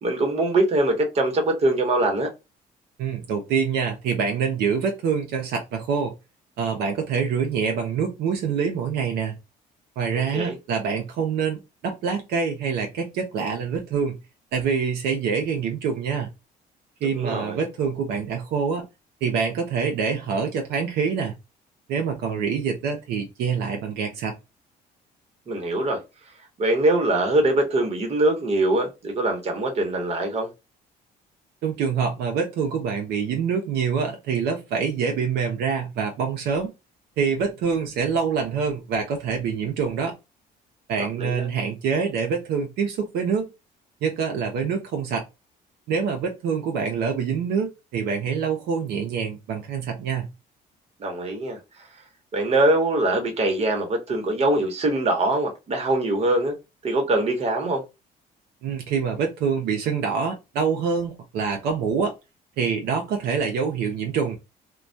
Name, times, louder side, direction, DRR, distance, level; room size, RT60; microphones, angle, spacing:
voice 1, 0.0-2.3 10.3-10.5 17.0-17.6 25.5-26.0 26.6-30.5 41.0-41.5 51.0-51.9 52.3-56.6 56.8-57.8, right 2 dB, 40° right, 1.0 m, -23 dB
voice 2, 3.0-6.1 6.6-9.3 10.0-14.1 14.5-16.3 17.0-18.8 19.2-21.3 21.9-24.3 31.6-36.7 37.2-40.1 40.9-43.5 44.0-45.2 45.9-50.3 58.6-62.1 62.6-64.4, right 6 dB, 75° right, 0.6 m, -25 dB
2.2 x 2.2 x 2.6 m
cardioid pair, 110°, 17 cm